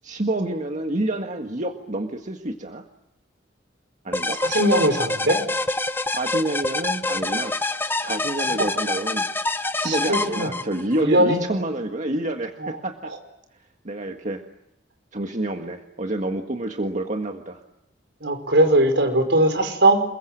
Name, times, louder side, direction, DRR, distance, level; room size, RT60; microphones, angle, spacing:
voice 1, 0.0-2.8 4.0-4.4 6.1-7.6 8.0-9.3 9.7-13.1 13.8-14.4 15.1-17.6, right 1 dB, 40° right, 4 dB, 1.7 m, -28 dB
sound 1, 4.1-11.0, left 2 dB, 10° left, 1.0 m, -26 dB
voice 2, 4.4-5.4 8.6-8.7 9.8-10.5 11.0-11.4 12.6-12.8 13.0-13.2 18.2-20.0, right 1 dB, 70° right, 7 dB, 5.1 m, -20 dB
28.5 x 22.5 x 9.1 m, 0.82 s
head